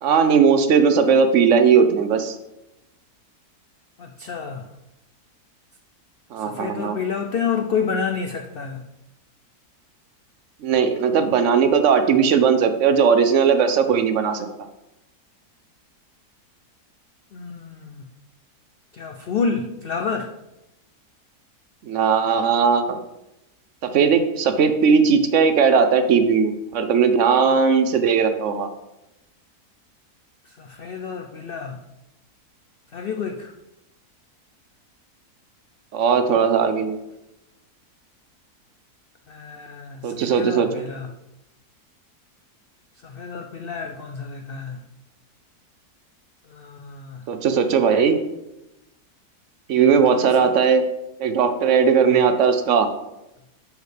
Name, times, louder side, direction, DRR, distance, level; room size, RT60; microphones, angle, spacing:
voice 1, 0.0-2.3 6.3-7.0 10.6-14.5 21.8-23.0 23.8-28.7 35.9-37.0 40.0-40.8 47.3-48.2 49.7-50.8 51.2-52.9, right 6 dB, 60° right, 9 dB, 0.8 m, -18 dB
voice 2, 4.0-4.6 6.4-8.8 17.3-18.1 18.9-20.3 30.6-31.8 32.9-33.5 39.3-41.1 43.0-44.8 46.5-47.2 50.0-50.5, left 5 dB, 85° left, 4 dB, 0.5 m, -29 dB
11.0 x 4.9 x 3.3 m, 0.92 s
omnidirectional pair, 1.7 m